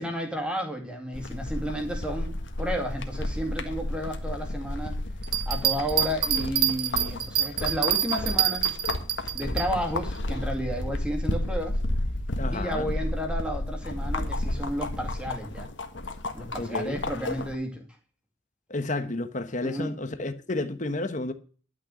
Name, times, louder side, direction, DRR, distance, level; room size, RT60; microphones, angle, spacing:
voice 1, 0.0-5.0 5.5-8.7 9.3-11.8 12.5-15.7 16.3-17.9 19.0-19.1 19.6-19.9, equal, 5° right, 2.3 m, -32 dB
sound 1, 1.1-17.5, left 1 dB, 65° left, 1.5 m, -32 dB
Bell, 5.2-9.7 10.1-10.2, right 11 dB, 45° right, 1.3 m, -26 dB
voice 2, 12.4-12.9 16.6-17.0 18.7-21.3, left 2 dB, 35° left, 1.1 m, -31 dB
12.0 x 6.3 x 7.2 m
head